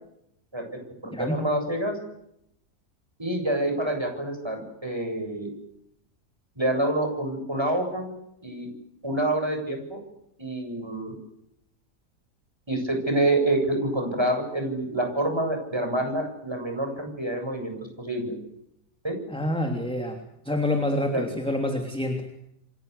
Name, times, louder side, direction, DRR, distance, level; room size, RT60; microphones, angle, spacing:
voice 1, 0.5-2.0 3.2-5.5 6.6-8.1 8.4-8.7 9.0-10.0 10.4-11.1 12.7-18.3 19.0-19.2 21.1-21.2, right 1 dB, 15° right, 4 dB, 7.7 m, -27 dB
voice 2, 1.1-1.4 19.3-20.2 20.4-22.3, left 1 dB, 5° left, 4 dB, 3.2 m, -27 dB
29.0 x 25.0 x 8.3 m, 0.80 s
omnidirectional pair, 1.7 m